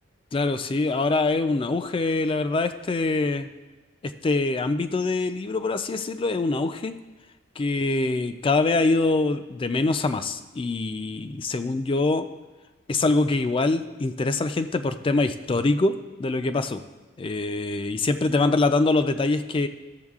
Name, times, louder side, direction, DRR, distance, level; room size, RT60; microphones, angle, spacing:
voice 1, 0.3-3.5 4.0-6.9 7.6-12.3 12.9-16.8 17.2-19.7, left 3 dB, 25° left, 10 dB, 0.3 m, -24 dB
13.5 x 7.1 x 2.4 m, 1.2 s
head